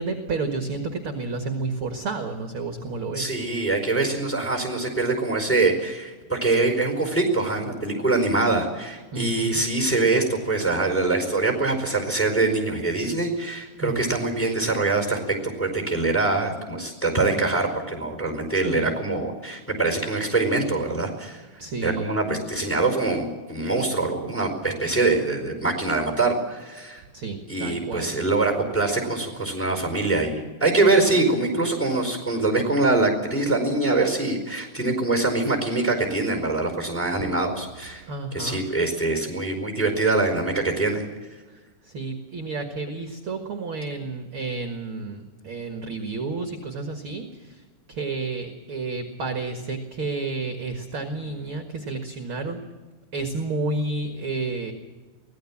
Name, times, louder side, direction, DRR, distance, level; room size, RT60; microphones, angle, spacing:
voice 1, 0.0-3.4 9.1-9.6 13.8-14.1 18.5-18.9 21.6-22.3 27.1-28.1 37.2-37.3 38.1-38.6 41.8-47.6 47.9-52.6 53.1-54.7, right 3 dB, 45° right, 5 dB, 2.2 m, -31 dB
voice 2, 3.1-21.4 21.8-27.0 27.5-38.0 38.3-41.0, right 3 dB, 5° left, 5 dB, 4.3 m, -24 dB
24.0 x 17.5 x 7.4 m, 1.3 s
omnidirectional pair, 3.8 m